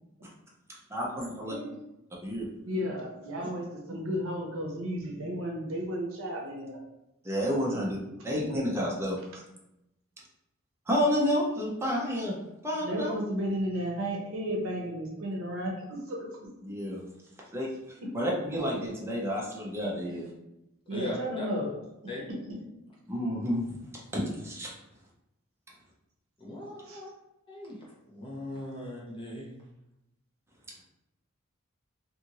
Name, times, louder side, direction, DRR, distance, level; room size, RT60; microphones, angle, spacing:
voice 1, 0.9-1.5 2.2-2.5 7.2-8.0 8.2-9.4 10.9-12.3 12.6-13.1 16.6-17.0 17.5-17.7 18.1-20.3 23.1-23.6 24.1-24.7, equal, 10° right, -4 dB, 0.6 m, -30 dB
voice 2, 1.4-1.8 2.6-6.8 7.7-8.1 12.8-16.4 18.0-18.1 20.9-21.7 26.9-27.0, equal, 65° right, 0 dB, 0.7 m, -33 dB
voice 3, 20.9-21.5 22.1-22.2 26.4-27.1 27.5-27.8 28.1-29.7, left 1 dB, 25° left, -5 dB, 0.8 m, -39 dB
2.6 x 2.5 x 2.9 m, 0.89 s
head